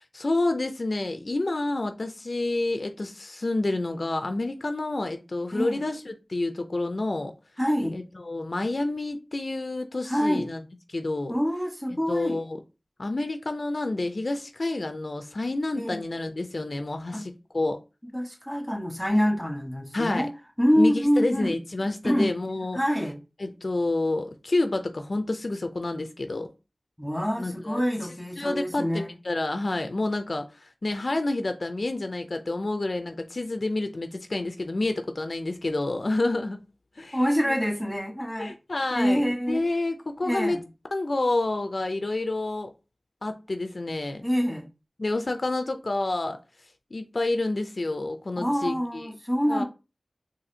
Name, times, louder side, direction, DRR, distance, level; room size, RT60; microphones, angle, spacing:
voice 1, 0.1-7.3 7.9-10.6 10.9-11.3 12.1-12.6 13.0-17.8 19.9-20.3 20.8-22.8 23.4-26.5 27.4-27.8 28.4-36.6 37.0-37.2 37.5-37.6 38.4-40.6 40.9-42.7 43.2-44.3 45.0-46.4 46.9-49.1 49.5-49.6, left 2 dB, 65° left, 0.4 m, -29 dB
voice 2, 5.5-5.8 7.6-8.0 10.1-10.5 11.3-12.4 15.7-16.0 17.1-17.2 18.1-20.3 20.6-21.6 22.0-22.3 22.7-23.2 27.0-29.1 37.1-38.5 38.9-39.6 40.2-40.6 44.2-44.7 48.4-49.6, equal, ahead, 1.2 m, -26 dB
4.1 x 2.6 x 2.7 m
wide cardioid pair, 45°, 0 cm